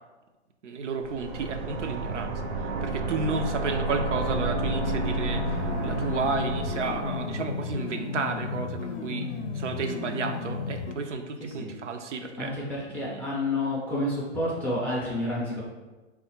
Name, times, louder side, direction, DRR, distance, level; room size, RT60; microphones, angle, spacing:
voice 1, 0.6-2.3 2.6-12.5 12.9-13.2, right 4 dB, 90° right, 5 dB, 0.6 m, -32 dB
sound 1, 1.0-7.5, right 2 dB, 45° right, 0.6 m, -30 dB
sound 2, 2.4-2.6 3.0-3.2 3.7-4.4 5.4-6.1 6.6-7.5, right 1 dB, 70° right, 1.0 m, -44 dB
sound 3, 5.3-10.9, left 5 dB, 85° left, 0.5 m, -34 dB
voice 2, 11.4-11.7 12.4-15.6, left 1 dB, 5° left, -8 dB, 0.4 m, -29 dB
3.7 x 2.3 x 4.2 m, 1.2 s
hypercardioid pair, 135°, 35 cm